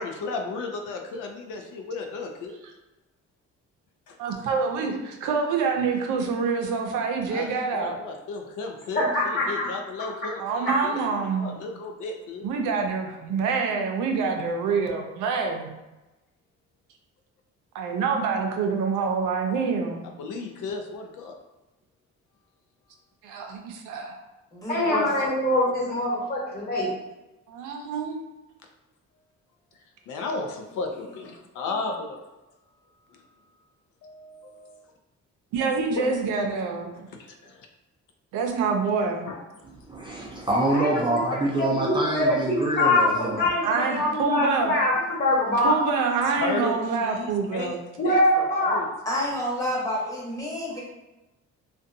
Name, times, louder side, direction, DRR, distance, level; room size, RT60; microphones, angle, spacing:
voice 1, 0.0-2.5 4.1-4.2 7.3-12.5 20.2-21.3 30.1-32.1 34.0-34.8 37.2-37.6 39.3-39.4 40.3-40.4 46.3-47.7 48.0-48.9, left 3 dB, 85° left, 3 dB, 0.5 m, -34 dB
voice 2, 4.2-8.0 10.4-11.6 12.4-15.7 17.7-20.1 23.2-24.2 27.5-28.2 35.5-37.1 38.3-39.3 43.6-44.7 45.6-47.8, right 5 dB, 85° right, 3 dB, 0.5 m, -26 dB
voice 3, 8.9-9.6 10.6-10.7 24.7-26.9 40.7-43.0 43.4-45.8 48.0-48.8, left 1 dB, 30° left, -5 dB, 1.1 m, -24 dB
voice 4, 24.5-25.3 49.0-50.8, left 1 dB, 10° left, -5 dB, 0.9 m, -29 dB
voice 5, 39.6-43.4, right 2 dB, 15° right, -4 dB, 0.4 m, -26 dB
2.6 x 2.2 x 2.6 m, 1.0 s
cardioid pair, 90°, 30 cm